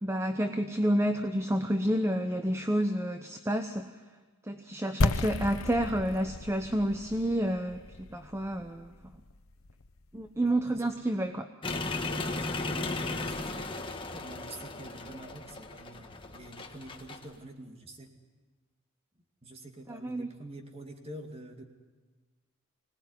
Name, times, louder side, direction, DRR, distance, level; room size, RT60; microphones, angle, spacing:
voice 1, 0.0-3.9 4.4-8.9 10.1-11.5 19.9-20.3, right 1 dB, 10° right, 7 dB, 0.8 m, -29 dB
sound 1, 5.0-10.7, left 2 dB, 80° left, 1.0 m, -34 dB
voice 2, 10.4-10.9 12.0-13.6 14.1-18.1 19.4-21.6, right 1 dB, 30° right, 4 dB, 2.3 m, -46 dB
sound 2, 11.6-17.3, left 2 dB, 25° left, 1.5 m, -36 dB
24.5 x 18.5 x 9.7 m, 1.3 s
head